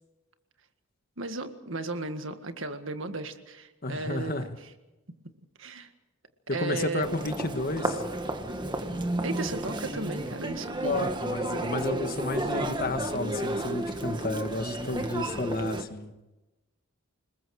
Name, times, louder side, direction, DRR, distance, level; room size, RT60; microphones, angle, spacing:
voice 1, 1.2-4.5 5.6-5.9 6.5-7.1 9.2-11.1, right 3 dB, 60° right, 8 dB, 1.8 m, -35 dB
voice 2, 3.8-4.6 6.5-8.0 10.8-16.1, left 2 dB, 45° left, 8 dB, 1.5 m, -32 dB
Human voice, 7.0-15.8, right 1 dB, 20° right, 1.5 m, -32 dB
28.5 x 20.5 x 4.9 m, 1.0 s
head